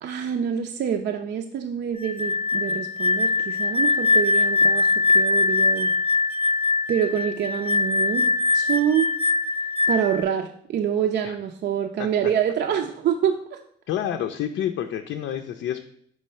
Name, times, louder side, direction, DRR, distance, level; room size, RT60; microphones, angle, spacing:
voice 1, 0.0-5.9 6.9-8.3 8.5-9.1 9.9-13.6, right 9 dB, 60° right, 4 dB, 0.5 m, -26 dB
sound 1, 2.0-10.2, left 3 dB, 30° left, 0.7 m, -22 dB
voice 2, 13.9-15.8, left 10 dB, 75° left, 5 dB, 0.5 m, -28 dB
5.4 x 3.1 x 5.5 m, 0.65 s
cardioid pair, 90°, 20 cm